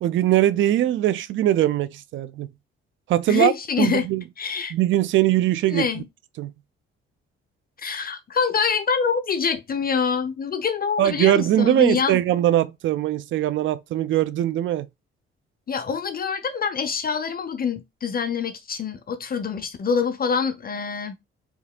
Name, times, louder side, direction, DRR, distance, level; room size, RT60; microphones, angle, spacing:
voice 1, 0.0-2.5 3.1-3.5 3.8-4.2 4.7-5.9 6.4-6.5 11.0-14.9, right 13 dB, 40° right, 0.4 m, -21 dB
voice 2, 3.3-4.1 4.4-4.7 5.7-6.1 7.8-12.2 15.7-21.2, left 6 dB, 30° left, 0.5 m, -25 dB
4.7 x 2.8 x 2.3 m
figure-of-eight pair, 40°, 31 cm